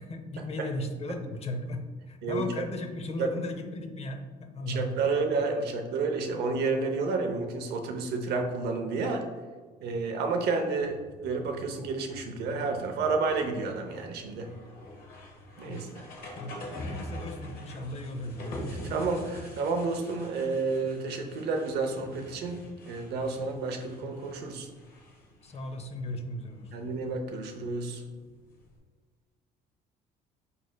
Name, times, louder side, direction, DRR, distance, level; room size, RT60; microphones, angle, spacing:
voice 1, 0.0-5.2 15.6-15.9 16.4-16.5 16.9-18.7 25.4-26.8, left 1 dB, 40° left, 6 dB, 0.5 m, -36 dB
voice 2, 4.7-9.2 9.8-14.5 15.6-16.0 18.8-22.6 22.9-24.7 26.7-28.0, right 4 dB, 75° right, 5 dB, 0.7 m, -30 dB
sound 1, 10.8-28.8, left 1 dB, 60° left, 1.0 m, -45 dB
4.9 x 4.1 x 2.2 m, 1.5 s
cardioid pair, 110°, 17 cm